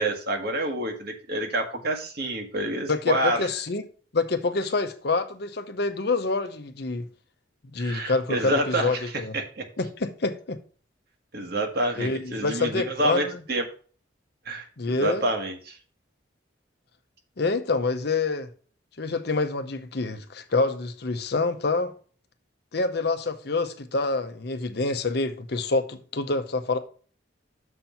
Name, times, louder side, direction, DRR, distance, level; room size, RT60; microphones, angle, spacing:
voice 1, 0.0-3.5 7.8-9.7 11.3-13.6 14.4-15.8, right 1 dB, 55° right, 1.4 m, -28 dB
voice 2, 2.9-3.8 4.1-7.1 7.6-9.4 9.8-10.6 12.0-13.2 14.8-15.2 17.4-18.5 19.0-21.9 22.7-26.8, left 3 dB, 55° left, 0.8 m, -27 dB
6.8 x 4.4 x 5.4 m
head